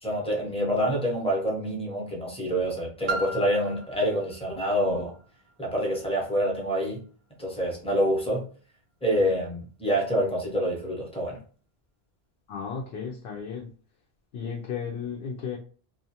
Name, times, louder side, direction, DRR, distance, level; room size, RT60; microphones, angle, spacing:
voice 1, 0.0-5.2 5.6-7.0 7.4-8.4 9.0-11.4, equal, 5° left, -2 dB, 0.7 m, -27 dB
Piano, 3.1-8.5 9.2-9.3, right 2 dB, 70° right, 0.7 m, -39 dB
voice 2, 12.5-13.7 14.3-15.6, left 6 dB, 75° left, -1 dB, 0.8 m, -34 dB
2.5 x 2.2 x 2.8 m, 0.42 s
omnidirectional pair, 1.0 m